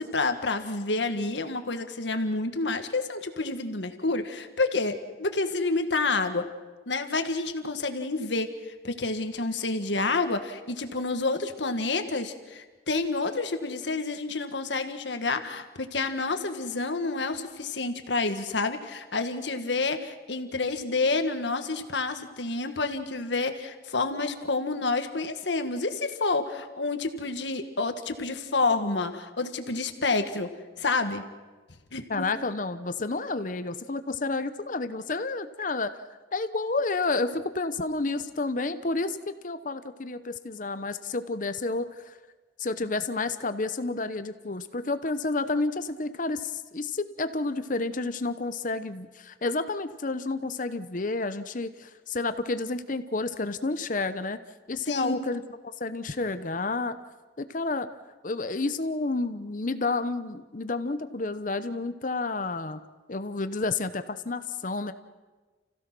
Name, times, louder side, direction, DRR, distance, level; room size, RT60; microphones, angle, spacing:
voice 1, 0.0-6.4 6.9-8.5 8.8-30.5 30.8-31.3 31.9-32.2 54.9-55.2, left 3 dB, 85° left, 7 dB, 1.7 m, -29 dB
voice 2, 32.1-36.0 36.3-42.1 42.6-54.4 54.7-55.4 55.8-57.0 57.4-57.9 58.2-62.8 63.1-64.9, left 3 dB, 45° left, 11 dB, 0.9 m, -30 dB
30.0 x 16.0 x 6.1 m, 1.3 s
head